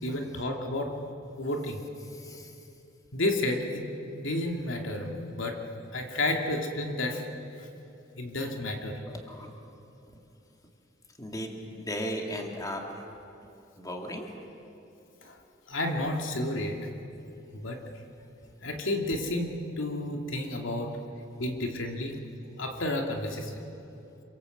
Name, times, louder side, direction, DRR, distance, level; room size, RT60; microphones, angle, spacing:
voice 1, 0.0-1.0 1.4-1.8 3.1-3.9 4.1-5.6 5.9-7.3 8.2-9.0 15.2-15.4 15.7-16.9 17.5-17.8 18.6-21.0 21.4-22.2 22.6-23.5, left 1 dB, 85° left, 2 dB, 2.7 m, -31 dB
voice 2, 2.0-2.5 9.1-9.5 11.2-13.0 13.8-14.3, equal, 20° left, 1 dB, 2.5 m, -36 dB
27.5 x 25.0 x 8.1 m, 2.9 s
head